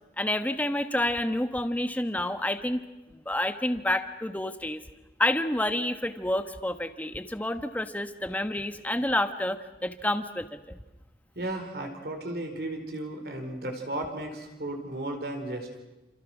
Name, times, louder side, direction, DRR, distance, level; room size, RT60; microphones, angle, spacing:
voice 1, 0.2-2.8 3.1-4.8 5.2-10.8, left 1 dB, 10° left, 9 dB, 1.2 m, -29 dB
voice 2, 11.3-15.8, right 1 dB, 60° right, 4 dB, 4.5 m, -35 dB
29.0 x 27.5 x 6.2 m, 1.1 s
head